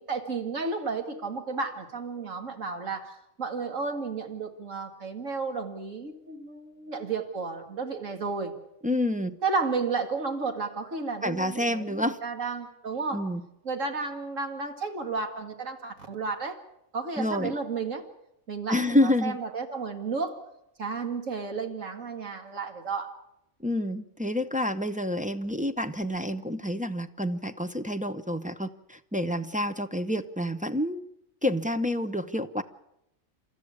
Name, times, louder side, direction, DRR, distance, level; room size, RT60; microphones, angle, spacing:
voice 1, 0.0-8.5 9.4-13.3 13.6-16.6 16.9-18.1 18.5-20.4 20.8-23.2, right 4 dB, 60° right, 5 dB, 2.5 m, -32 dB
voice 2, 8.8-9.4 11.2-12.2 13.1-13.4 17.2-17.5 18.7-19.4 23.6-31.0 31.4-32.6, left 1 dB, 10° right, 6 dB, 0.5 m, -28 dB
29.5 x 13.5 x 8.6 m, 0.84 s
omnidirectional pair, 1.5 m